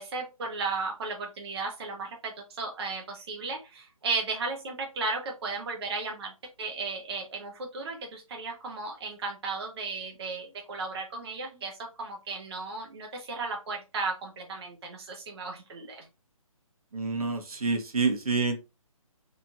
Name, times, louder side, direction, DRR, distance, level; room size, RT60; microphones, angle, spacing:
voice 1, 0.0-6.3 6.6-16.1, right 3 dB, 45° right, 1 dB, 0.6 m, -35 dB
voice 2, 16.9-18.6, right 4 dB, 75° right, 4 dB, 0.9 m, -27 dB
3.0 x 2.5 x 2.4 m, 0.27 s
figure-of-eight pair, 145°, 19 cm